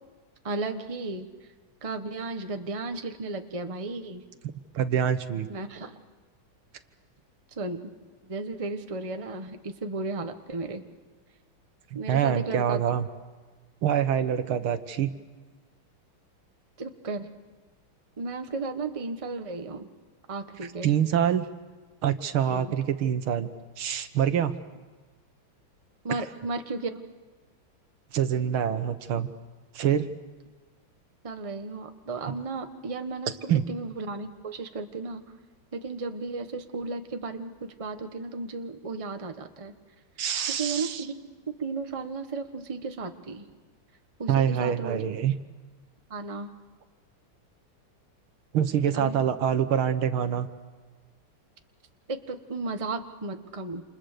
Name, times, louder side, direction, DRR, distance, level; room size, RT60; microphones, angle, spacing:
voice 1, 0.4-1.3 1.8-4.2 5.5-6.0 7.6-7.9 8.2-10.8 11.9-12.8 16.8-17.3 18.2-19.9 20.3-20.9 22.5-22.7 26.0-27.0 31.2-33.3 33.7-35.2 35.7-37.5 37.8-39.7 40.6-41.3 41.6-43.4 44.2-45.0 46.1-46.5 48.9-49.2 52.1-53.8, right 3 dB, 20° right, 6 dB, 1.2 m, -34 dB
voice 2, 4.7-5.5 11.9-13.1 13.8-15.1 20.8-21.5 22.0-23.5 23.8-24.6 28.1-29.3 29.8-30.1 33.5-33.6 40.2-41.0 44.3-45.3 48.5-50.5, right 9 dB, 80° right, 9 dB, 2.1 m, -25 dB
28.5 x 28.5 x 6.8 m, 1.4 s
omnidirectional pair, 2.3 m